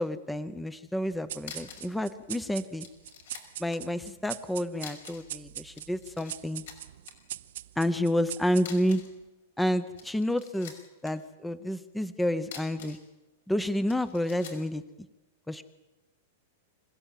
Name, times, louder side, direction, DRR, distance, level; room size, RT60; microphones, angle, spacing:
voice 1, 0.0-2.9 3.6-6.6 7.8-9.0 9.6-10.7 11.0-13.0 13.5-14.8 15.5-15.6, equal, 5° left, 13 dB, 0.7 m, -29 dB
sound 1, 1.1-1.2 1.4-2.0 2.2-2.3 2.8-3.8 4.8-5.3 5.6-6.3 6.7-7.1 8.6-9.2 9.8-11.1 12.4-13.1 13.9-14.7, left 7 dB, 75° left, 5.5 m, -46 dB
sound 2, 1.3-9.0, right 13 dB, 65° right, 0.8 m, -43 dB
26.0 x 16.0 x 9.2 m, 1.1 s
supercardioid pair, 160°, 0 cm